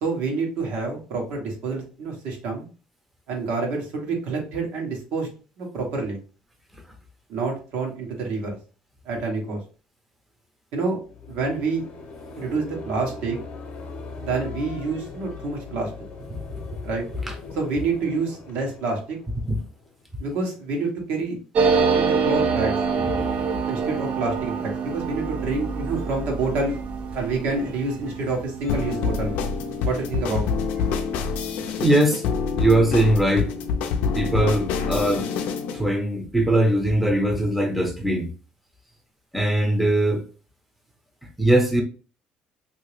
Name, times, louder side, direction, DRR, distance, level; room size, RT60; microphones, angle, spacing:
voice 1, 0.0-2.7 3.3-5.3 5.6-6.2 7.3-8.6 9.0-9.6 10.7-11.0 11.3-11.8 12.4-13.4 14.2-15.9 16.8-17.0 17.6-19.2 20.2-21.4 21.7-22.8 23.7-26.8 27.1-29.4 29.8-30.5 30.8-31.0, right 3 dB, 75° right, 1.2 m, -27 dB
sound 1, 11.0-20.0, left 4 dB, 40° left, 0.9 m, -39 dB
sound 2, 21.5-30.7 31.0-31.1 31.3-31.9, right 5 dB, 50° right, 0.5 m, -26 dB
voice 2, 23.0-23.3 31.8-32.2 32.6-33.5 34.1-35.3 35.7-38.3 39.3-40.2 41.4-41.8, right 1 dB, ahead, 0.7 m, -21 dB
sound 3, 28.7-35.8, left 5 dB, 75° left, 0.5 m, -26 dB
2.9 x 2.7 x 3.2 m
cardioid pair, 125°, 3 cm